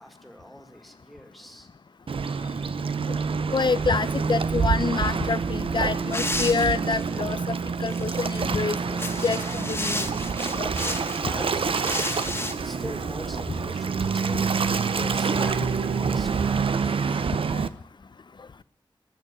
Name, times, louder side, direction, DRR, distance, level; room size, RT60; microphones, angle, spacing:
voice 1, 0.0-1.7 11.2-17.6, equal, ahead, 5 dB, 2.2 m, -44 dB
Waves surf, 2.1-17.7, right 5 dB, 85° right, 0.7 m, -27 dB
voice 2, 3.5-7.5 7.8-8.8 9.2-10.1 10.6-10.7 11.2-11.5, left 4 dB, 60° left, 16 dB, 0.6 m, -27 dB
sound 1, 6.1-7.1 7.9-8.4 8.9-11.2 11.8-12.5, left 2 dB, 25° left, 1.6 m, -32 dB
20.0 x 6.9 x 9.9 m, 0.72 s
wide cardioid pair, 65°, 9 cm